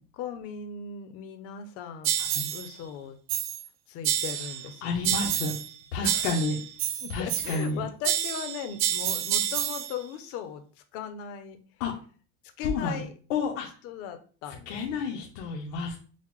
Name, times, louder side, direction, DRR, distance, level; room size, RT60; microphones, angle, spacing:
voice 1, 0.1-3.2 3.9-5.4 6.0-6.4 7.0-11.6 12.6-13.1 13.8-15.3, left 7 dB, 45° left, 8 dB, 0.6 m, -38 dB
sound 1, 2.0-2.7 3.3-3.7 4.0-4.7 5.0-5.7 6.0-7.7 8.0-9.9, right 11 dB, 75° right, 0.6 m, -29 dB
voice 2, 2.2-2.5 4.8-5.5 5.9-6.5 7.1-7.8 11.8-11.9 12.6-13.0 13.3-13.7 14.7-16.0, left 4 dB, 90° left, -2 dB, 0.8 m, -30 dB
5.7 x 2.1 x 3.0 m, 0.41 s
cardioid pair, 165°, 35 cm